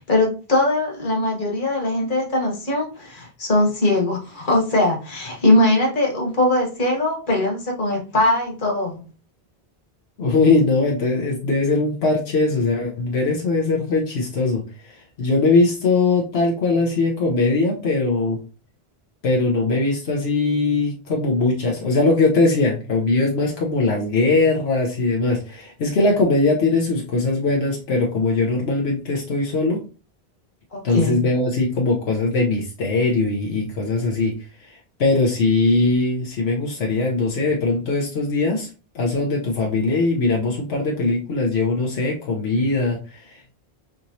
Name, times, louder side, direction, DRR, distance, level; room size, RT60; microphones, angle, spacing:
voice 1, 0.0-9.0 30.7-31.2, left 1 dB, 50° left, 0 dB, 1.4 m, -21 dB
voice 2, 10.2-18.4 19.2-29.8 30.8-34.3 34.6-38.7 38.9-43.5, left 3 dB, 80° left, -1 dB, 1.1 m, -21 dB
4.9 x 2.9 x 2.7 m, 0.35 s
omnidirectional pair, 1.1 m